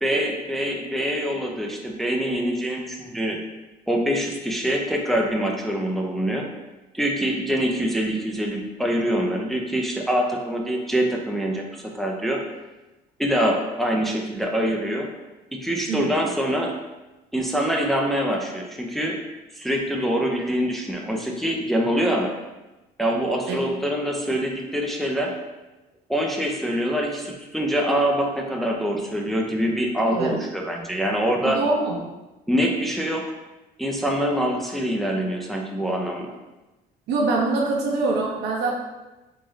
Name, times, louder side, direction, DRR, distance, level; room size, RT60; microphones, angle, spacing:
voice 1, 0.0-3.4 3.9-6.5 6.9-12.4 13.2-15.1 15.5-16.7 17.3-19.2 19.6-22.3 23.0-25.4 26.1-31.6 32.5-33.2 33.8-36.3, equal, ahead, 0 dB, 0.4 m, -24 dB
voice 2, 31.4-31.9 37.1-38.7, right 3 dB, 80° right, -1 dB, 0.8 m, -24 dB
3.7 x 2.6 x 3.1 m, 1.1 s
cardioid pair, 110°, 17 cm